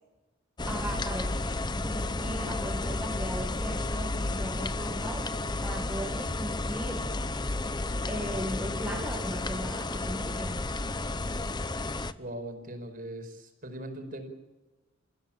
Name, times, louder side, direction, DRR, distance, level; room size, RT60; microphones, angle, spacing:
sound 1, 0.6-12.1, left 2 dB, 20° left, 0.8 m, -32 dB
voice 1, 0.7-5.4 5.6-7.1 8.1-10.7, equal, 10° right, 1.9 m, -37 dB
voice 2, 12.2-14.3, right 1 dB, 45° right, 5.1 m, -41 dB
30.0 x 16.0 x 8.8 m
head